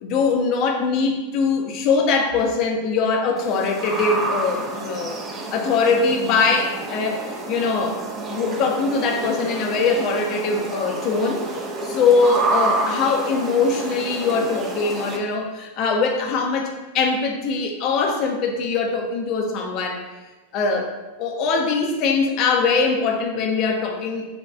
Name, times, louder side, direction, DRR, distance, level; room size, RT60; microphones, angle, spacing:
voice 1, 0.0-5.2 5.5-8.0 8.3-11.4 11.8-20.0 20.5-20.9 21.2-24.3, left 4 dB, 40° left, 2 dB, 0.4 m, -22 dB
sound 1, 3.4-15.2, right 2 dB, 20° right, 0.4 m, -29 dB
4.1 x 2.2 x 2.2 m, 1.2 s
figure-of-eight pair, 90°, 0 cm